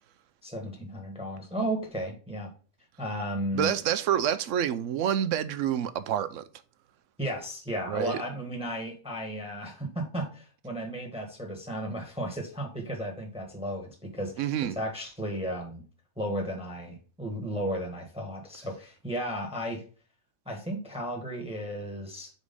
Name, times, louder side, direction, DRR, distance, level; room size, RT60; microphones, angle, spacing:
voice 1, 0.4-2.5 3.0-3.7 7.2-14.5 14.7-15.8 16.2-19.8 20.4-22.3, equal, 5° right, 1.3 m, -34 dB
voice 2, 3.5-6.4 7.9-8.2 14.4-14.8, right 10 dB, 70° right, 0.9 m, -28 dB
4.8 x 4.0 x 5.1 m
omnidirectional pair, 1.5 m